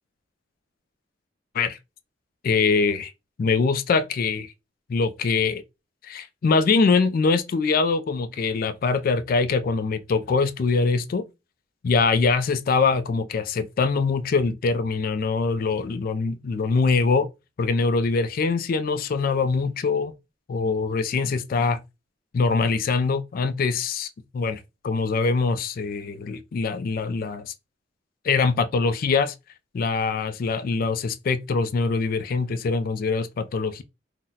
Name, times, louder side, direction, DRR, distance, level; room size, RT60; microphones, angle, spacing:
voice 1, 2.4-3.1 3.4-4.5 4.9-5.6 6.0-11.2 11.8-17.3 17.6-20.1 20.5-21.8 22.3-24.1 24.3-27.5 28.2-29.3 29.7-33.8, left 4 dB, 50° left, 0.3 m, -23 dB
2.7 x 2.1 x 3.7 m
head